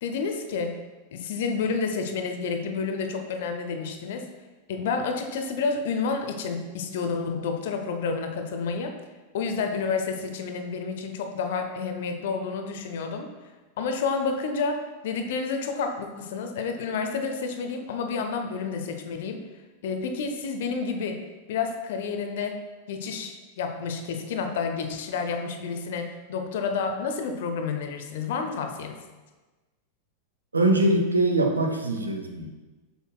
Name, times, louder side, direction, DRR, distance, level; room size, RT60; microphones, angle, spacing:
voice 1, 0.0-0.8 1.1-4.3 4.7-8.9 9.3-13.3 13.8-19.4 19.8-21.2 21.5-22.6 22.9-29.0, left 5 dB, 55° left, 5 dB, 0.7 m, -30 dB
voice 2, 30.5-32.5, right 1 dB, 80° right, 3 dB, 0.8 m, -22 dB
7.1 x 7.1 x 2.3 m, 1.2 s
figure-of-eight pair, 90°, 0 cm